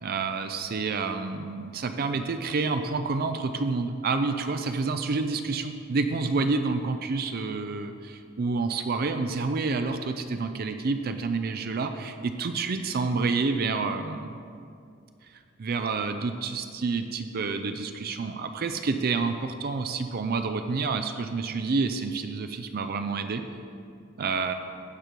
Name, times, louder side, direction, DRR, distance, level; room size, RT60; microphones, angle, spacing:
voice 1, 0.0-14.4 15.6-23.4 24.2-24.5, right 4 dB, 50° right, 7 dB, 0.5 m, -28 dB
15.5 x 5.2 x 4.6 m, 2.4 s
head